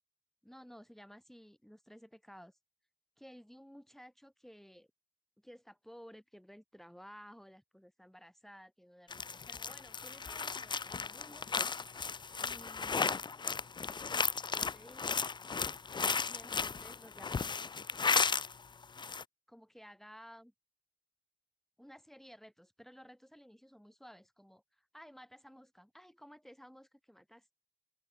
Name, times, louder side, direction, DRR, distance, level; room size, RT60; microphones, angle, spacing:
voice 1, 0.4-2.6 3.2-4.9 5.4-11.5 12.4-13.4 14.5-15.2 16.2-18.1 19.5-20.5 21.8-27.5, equal, ahead, 5.9 m, -56 dB
sound 1, 9.1-18.5 18.8-19.2, left 5 dB, 25° left, 0.5 m, -35 dB
open air
cardioid pair, 90°, 20 cm